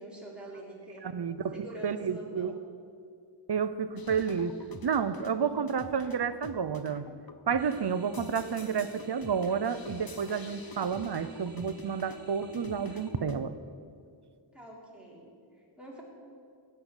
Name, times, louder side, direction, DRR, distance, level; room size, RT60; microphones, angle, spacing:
voice 1, 0.0-1.1 1.5-2.6 7.7-7.8 14.5-16.0, right 1 dB, ahead, -4 dB, 3.2 m, -46 dB
voice 2, 1.0-2.6 3.5-7.1 7.5-13.6, right 6 dB, 55° right, 13 dB, 0.7 m, -31 dB
sound 1, 4.0-13.4, left 4 dB, 45° left, 0.8 m, -48 dB
sound 2, 7.6-13.1, right 1 dB, 85° right, 1.3 m, -52 dB
16.5 x 5.6 x 8.2 m, 2.3 s
wide cardioid pair, 60°, 50 cm